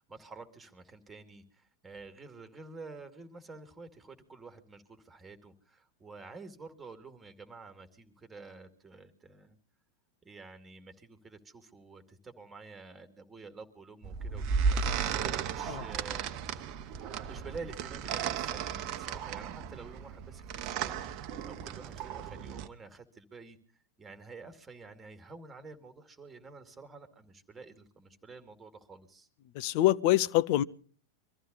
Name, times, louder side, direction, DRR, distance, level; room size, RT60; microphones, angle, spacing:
voice 1, 0.0-9.6 10.2-16.3 17.2-23.6 24.0-29.3, right 4 dB, 15° right, 2.4 m, -49 dB
sound 1, 14.0-22.7, right 6 dB, 40° right, 1.0 m, -34 dB
voice 2, 29.5-30.6, left 15 dB, 45° left, 0.7 m, -25 dB
24.0 x 14.5 x 4.0 m
figure-of-eight pair, 90°, 0 cm